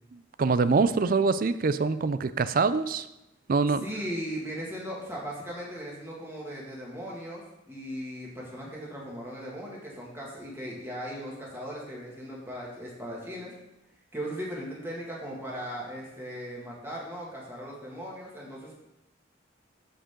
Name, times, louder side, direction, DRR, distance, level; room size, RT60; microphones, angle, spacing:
voice 1, 0.1-3.1 3.5-3.8, right 4 dB, 45° right, 13 dB, 0.4 m, -25 dB
voice 2, 3.8-13.5 14.1-18.7, equal, 15° right, -5 dB, 2.2 m, -38 dB
12.5 x 5.2 x 3.8 m, 0.92 s
head